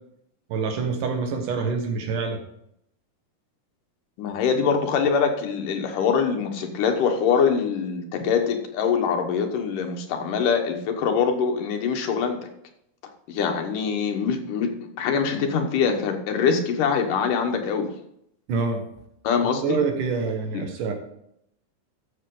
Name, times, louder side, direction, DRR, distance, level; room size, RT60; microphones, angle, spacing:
voice 1, 0.5-2.4 18.5-18.8 19.6-20.9, right 5 dB, 80° right, 4 dB, 3.1 m, -26 dB
voice 2, 4.2-12.4 13.3-14.7 15.0-17.9 19.2-19.8 20.5-20.7, left 6 dB, 85° left, 4 dB, 2.8 m, -23 dB
14.0 x 6.8 x 3.8 m, 0.74 s
omnidirectional pair, 3.6 m